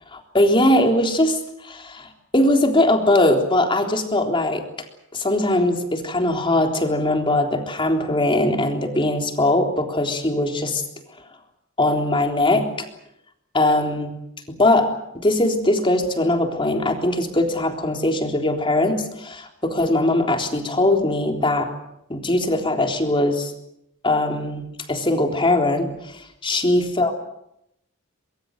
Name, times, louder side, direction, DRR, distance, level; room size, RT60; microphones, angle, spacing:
voice 1, 0.1-4.6 5.1-10.8 11.8-12.7 13.5-14.1 14.6-21.7 22.1-23.5 24.0-24.6 24.9-27.1, left 1 dB, 25° left, 3 dB, 3.7 m, -20 dB
24.0 x 23.0 x 8.0 m, 0.80 s
head